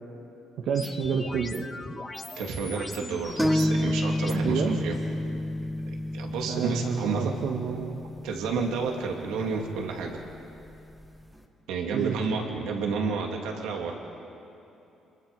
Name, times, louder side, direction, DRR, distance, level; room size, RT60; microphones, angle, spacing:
voice 1, 0.6-1.7 4.3-4.8 6.5-8.0 11.9-12.4, right 6 dB, 70° right, 2 dB, 1.5 m, -29 dB
sound 1, 0.7-4.3, left 2 dB, 20° left, 1.3 m, -39 dB
voice 2, 2.4-4.9 5.9-7.3 8.2-10.2 11.7-13.9, right 4 dB, 90° right, 2 dB, 2.5 m, -31 dB
sound 2, 3.4-10.9, left 1 dB, ahead, 2.0 m, -30 dB
26.5 x 22.0 x 5.4 m, 2.9 s
cardioid pair, 95°, 0 cm